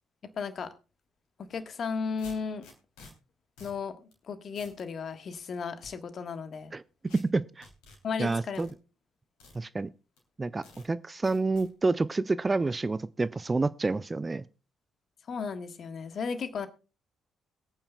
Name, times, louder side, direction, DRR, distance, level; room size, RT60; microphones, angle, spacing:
voice 1, 0.4-0.7 1.4-2.6 3.6-6.7 8.0-8.7 15.3-16.7, left 5 dB, 50° left, 1.4 m, -35 dB
sound 1, 1.4-1.5 2.2-3.1 3.6-3.8 4.1-4.2 4.5-4.8 5.3-5.9 7.1-7.2 7.6-8.7 9.4-9.6 10.2-10.3 10.6-10.9 11.2-11.7, left 3 dB, 70° left, 3.1 m, -52 dB
voice 2, 7.3-7.7 8.2-8.7 9.5-9.9 10.4-14.4, right 3 dB, 25° right, 0.5 m, -29 dB
22.0 x 8.8 x 2.3 m
figure-of-eight pair, 45°, 0 cm